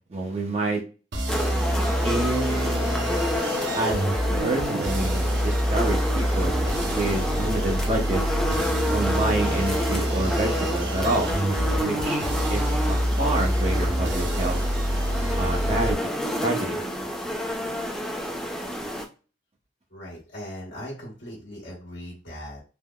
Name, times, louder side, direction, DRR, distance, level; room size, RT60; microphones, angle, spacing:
voice 1, 0.1-0.8 2.0-3.2 3.8-8.2 8.9-11.3 11.6-12.2 12.5-14.6 15.4-16.0 16.4-16.8, right 2 dB, 35° right, 0 dB, 0.7 m, -28 dB
sound 1, 1.1-15.9, equal, 80° right, 0.6 m, -26 dB
sound 2, 1.3-19.1, equal, 5° left, 0.4 m, -29 dB
voice 2, 19.9-22.6, equal, 80° left, -4 dB, 1.1 m, -39 dB
3.5 x 2.0 x 2.2 m, 0.35 s
head